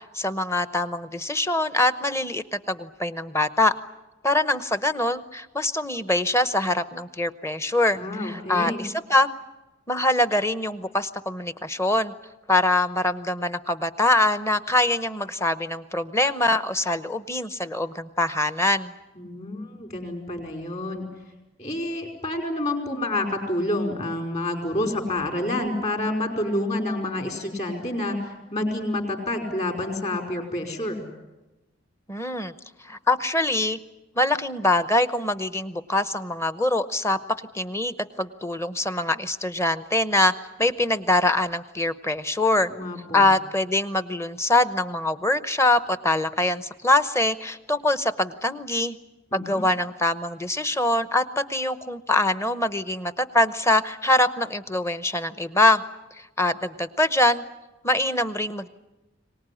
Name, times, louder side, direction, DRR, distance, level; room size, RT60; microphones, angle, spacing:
voice 1, 0.1-3.7 4.2-9.3 9.9-12.1 12.5-18.9 32.1-32.5 32.8-33.8 34.2-37.2 37.5-40.3 40.6-42.7 43.1-49.0 49.3-55.8 56.4-57.4 57.8-58.7, left 2 dB, 15° left, 12 dB, 0.8 m, -23 dB
voice 2, 7.9-8.8 19.1-21.1 21.6-31.0 42.7-43.2 49.3-49.6, left 1 dB, 35° left, 3 dB, 4.9 m, -28 dB
24.0 x 19.0 x 10.0 m, 1.1 s
head